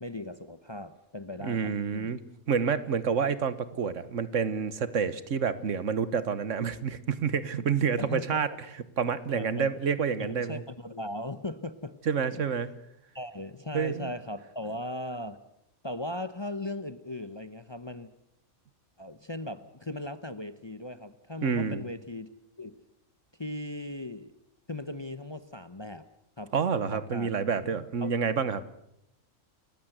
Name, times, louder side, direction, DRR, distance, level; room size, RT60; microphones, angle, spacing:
voice 1, 0.0-2.1 8.0-8.4 9.3-9.7 10.2-12.0 12.3-12.4 13.1-15.4 15.8-18.1 19.0-22.3 22.6-22.8 23.4-24.3 24.7-26.0 26.4-26.5 26.9-27.3 28.0-28.1, left 1 dB, 25° left, 12 dB, 0.8 m, -38 dB
voice 2, 1.4-2.2 2.5-8.5 9.0-10.6 12.1-12.7 13.7-14.1 21.4-21.8 26.5-28.6, right 6 dB, 75° right, 15 dB, 1.5 m, -28 dB
29.0 x 15.0 x 8.0 m, 0.80 s
omnidirectional pair, 1.3 m